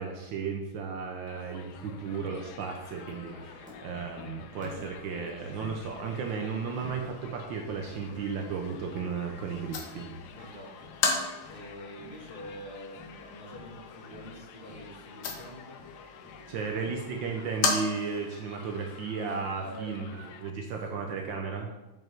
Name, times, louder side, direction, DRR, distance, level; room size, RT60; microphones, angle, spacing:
voice 1, 0.0-10.5 16.5-21.7, right 5 dB, 70° right, 2 dB, 1.4 m, -34 dB
Crowd, 1.3-20.5, left 7 dB, 75° left, 0.9 m, -51 dB
Wind chime, 1.5-17.7, left 3 dB, 5° right, 1.6 m, -52 dB
sound 1, 5.4-18.4, left 4 dB, 55° left, 1.5 m, -37 dB
voice 2, 10.3-15.8 16.4-16.8 19.6-19.9, equal, 30° left, -9 dB, 3.1 m, -46 dB
7.6 x 5.3 x 4.5 m, 1.0 s
omnidirectional pair, 2.3 m